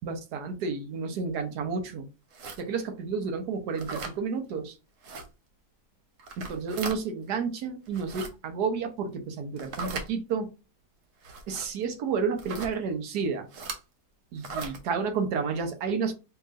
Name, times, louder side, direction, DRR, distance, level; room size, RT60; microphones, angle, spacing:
voice 1, 0.0-2.1 2.6-4.8 6.4-10.5 11.5-13.5 14.3-16.1, right 5 dB, 75° right, 6 dB, 1.3 m, -31 dB
sound 1, 2.3-2.6 3.7-4.2 5.0-5.3 6.2-7.0 7.9-8.3 9.6-10.1 11.2-11.7 12.4-12.7 13.5-13.8 14.4-14.8, right 4 dB, 60° right, 1.0 m, -37 dB
4.7 x 2.9 x 2.5 m, 0.29 s
omnidirectional pair, 1.8 m